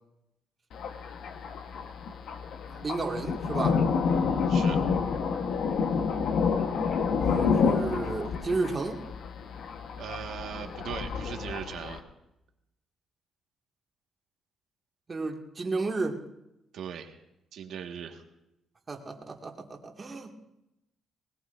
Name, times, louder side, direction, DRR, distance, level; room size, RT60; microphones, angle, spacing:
Thunder, 0.7-12.0, left 5 dB, 70° left, 1.3 m, -29 dB
voice 1, 2.7-3.8 7.2-9.0 15.1-16.2 18.9-20.4, right 3 dB, 35° right, 1 dB, 2.2 m, -33 dB
voice 2, 4.1-4.8 10.0-12.0 16.7-17.2 17.5-18.2, right 8 dB, 75° right, 4 dB, 1.7 m, -39 dB
20.0 x 20.0 x 2.7 m, 0.88 s
cardioid pair, 90°, 0 cm